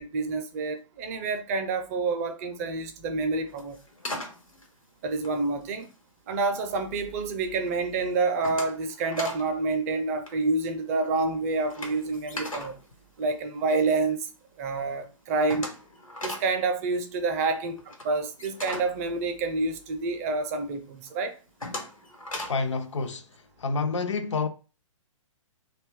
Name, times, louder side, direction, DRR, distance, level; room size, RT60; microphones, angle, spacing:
voice 1, 0.0-3.8 5.0-5.9 6.3-12.8 13.2-14.3 14.6-15.7 16.2-21.3, right 3 dB, 30° right, 0.5 m, -28 dB
sound 1, 3.5-6.0 6.4-7.0 7.4-7.7 8.0-9.5 9.7-9.9 10.2-13.9 14.3-14.4 14.7-14.8 15.0-20.0 20.5-20.6 21.1-22.7, left 1 dB, 80° left, 1.1 m, -39 dB
voice 2, 22.5-23.2 23.6-24.5, left 4 dB, 60° left, 0.5 m, -28 dB
2.6 x 2.3 x 3.5 m
figure-of-eight pair, 120°, 17 cm